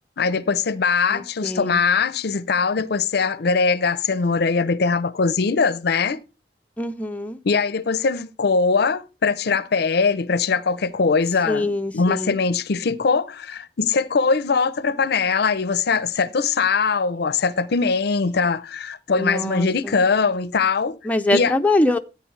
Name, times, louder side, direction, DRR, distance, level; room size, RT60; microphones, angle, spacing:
voice 1, 0.2-6.2 7.4-21.0 21.3-21.5, left 5 dB, 65° left, 0.6 m, -21 dB
voice 2, 1.1-1.8 6.8-7.4 11.5-12.4 19.2-20.0 21.0-22.0, left 2 dB, 10° left, 0.5 m, -23 dB
13.5 x 8.6 x 3.2 m
head